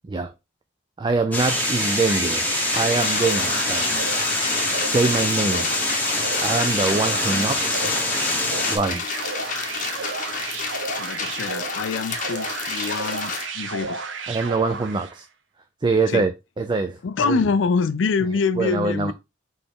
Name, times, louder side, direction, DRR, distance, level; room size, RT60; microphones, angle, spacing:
voice 1, 1.0-2.4 2.7-4.1 4.8-5.7 6.4-7.8 8.7-9.0 14.3-15.2 15.8-16.3 16.6-17.4 18.6-19.1, right 3 dB, 25° right, 0.3 m, -24 dB
sound 1, 1.3-8.8, left 2 dB, 10° left, 1.1 m, -24 dB
sound 2, 1.4-15.2, right 5 dB, 75° right, 0.7 m, -33 dB
sound 3, 2.7-13.4, left 5 dB, 45° left, 0.9 m, -31 dB
voice 2, 11.0-14.0 16.1-16.2 17.0-19.1, left 4 dB, 75° left, 0.4 m, -25 dB
4.1 x 3.3 x 3.5 m
head